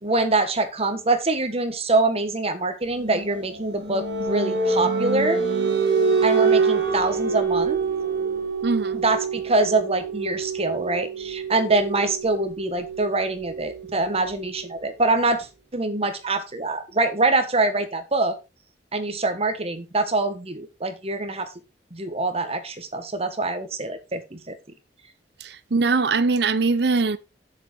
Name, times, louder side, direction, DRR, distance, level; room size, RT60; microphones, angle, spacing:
voice 1, 0.0-5.4 6.2-7.8 8.9-18.3 18.9-21.5 21.9-24.6, right 2 dB, 35° right, 1.5 m, -24 dB
sound 1, 3.0-14.5, right 5 dB, 90° right, 2.0 m, -26 dB
voice 2, 8.6-9.0 25.4-27.2, right 4 dB, 70° right, 0.8 m, -22 dB
7.4 x 7.3 x 4.5 m
head